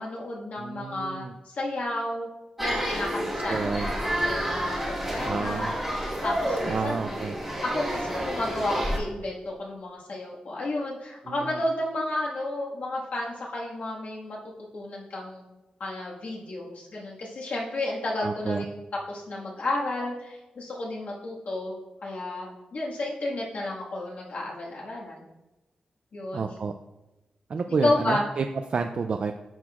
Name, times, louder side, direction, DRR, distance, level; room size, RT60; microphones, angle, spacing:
voice 1, 0.0-2.3 2.6-5.7 6.2-7.0 7.7-14.4 14.7-15.4 15.8-18.8 19.1-21.7 22.0-25.3 26.1-26.5 27.8-28.2, left 1 dB, 65° left, -4 dB, 1.6 m, -32 dB
voice 2, 0.6-1.3 3.5-3.9 5.2-5.7 6.6-7.4 11.2-11.6 18.2-18.6 26.3-26.7 27.5-28.4 28.7-29.3, right 5 dB, 50° right, 6 dB, 0.3 m, -30 dB
sound 1, 2.6-9.0, equal, 10° right, 1.5 m, -29 dB
10.5 x 6.0 x 2.4 m, 1.0 s
wide cardioid pair, 155°, 3 cm